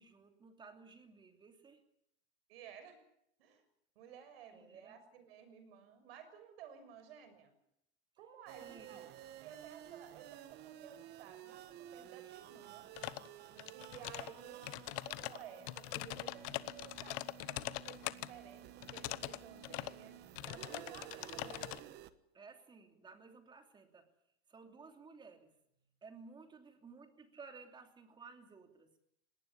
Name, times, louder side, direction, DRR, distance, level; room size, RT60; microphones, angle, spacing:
voice 1, 0.0-1.8 4.5-5.0 8.6-9.1 12.2-12.4 22.3-24.1 24.5-25.5 26.0-28.9, right 4 dB, 15° right, 6 dB, 2.9 m, -56 dB
voice 2, 2.5-3.0 3.4-3.6 3.9-7.5 8.2-12.9 13.7-14.7 15.0-17.2 17.5-20.2 20.4-21.7, right 8 dB, 70° right, 9 dB, 6.4 m, -55 dB
sound 1, 8.5-22.1, right 12 dB, 30° right, 1.2 m, -53 dB
sound 2, 13.0-13.3 13.6-14.3 14.6-18.3 18.8-19.4 19.6-19.9 20.3-21.8, left 21 dB, 45° left, 1.0 m, -42 dB
20.5 x 18.5 x 10.0 m, 0.75 s
supercardioid pair, 155°, 31 cm